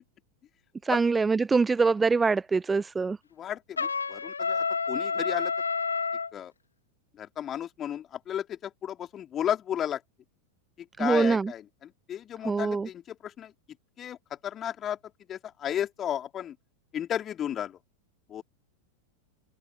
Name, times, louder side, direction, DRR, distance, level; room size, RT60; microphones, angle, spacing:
voice 1, 0.8-3.2 11.0-11.5 12.4-12.9, right 4 dB, 15° right, 0.8 m, -24 dB
voice 2, 3.4-5.5 6.3-6.5 7.2-10.0 10.8-13.5 14.0-15.0 15.3-16.6 16.9-17.8 18.3-18.4, left 10 dB, 25° left, 4.6 m, -33 dB
Trumpet, 3.8-6.3, left 5 dB, 75° left, 2.9 m, -29 dB
open air
figure-of-eight pair, 90°, 0 cm